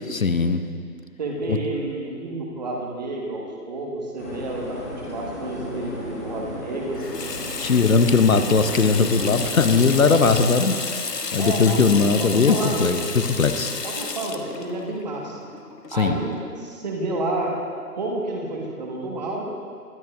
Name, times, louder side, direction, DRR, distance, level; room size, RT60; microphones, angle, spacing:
voice 1, 0.1-0.6 1.5-1.6 7.6-11.0 11.3-13.8 16.0-16.2, left 4 dB, 55° left, 9 dB, 0.9 m, -19 dB
voice 2, 1.2-7.0 11.4-13.1 13.8-15.5 15.9-17.5 17.9-19.5, right 2 dB, 25° right, -1 dB, 1.5 m, -30 dB
sound 1, 4.2-10.5, left 1 dB, 10° left, 0.9 m, -35 dB
Water tap faucet / Sink (filling or washing), 6.9-16.3, left 4 dB, 75° left, 1.3 m, -31 dB
22.5 x 11.5 x 2.5 m, 2.2 s
figure-of-eight pair, 155°, 48 cm